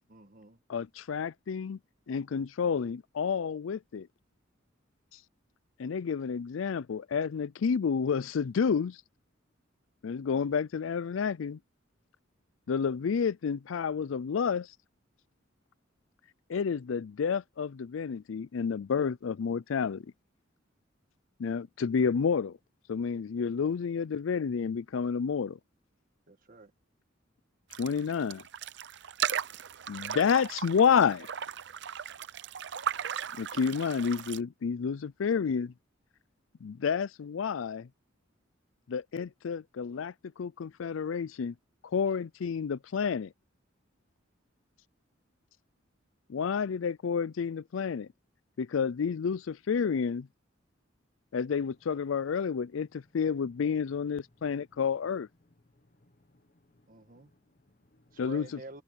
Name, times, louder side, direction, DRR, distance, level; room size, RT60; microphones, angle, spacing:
voice 1, 0.1-0.6 26.3-26.7 56.9-57.3 58.1-58.8, right 2 dB, 45° right, 1.6 m, -48 dB
voice 2, 0.7-1.8 2.1-4.1 5.8-9.0 10.0-11.6 12.7-14.7 16.5-20.0 21.4-22.6 22.9-25.6 27.8-28.4 29.9-31.3 33.4-35.7 36.6-37.9 38.9-41.5 41.9-43.3 46.3-48.1 48.6-50.3 51.3-55.3 58.2-58.6, left 6 dB, 90° left, 0.4 m, -30 dB
sound 1, 27.7-34.4, right 8 dB, 65° right, 0.6 m, -37 dB
voice 3, 55.8-58.2, left 1 dB, 45° left, 1.3 m, -67 dB
head